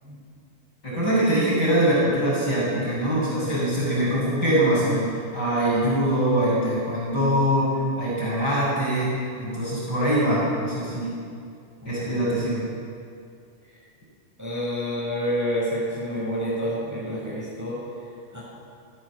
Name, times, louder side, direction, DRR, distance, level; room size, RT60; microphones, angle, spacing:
voice 1, 0.8-11.1 11.8-12.6, right 1 dB, 25° left, -7 dB, 8.3 m, -23 dB
voice 2, 14.4-17.8 18.3-18.4, equal, 5° right, -7 dB, 7.8 m, -29 dB
27.0 x 16.5 x 7.4 m, 2.4 s
omnidirectional pair, 4.0 m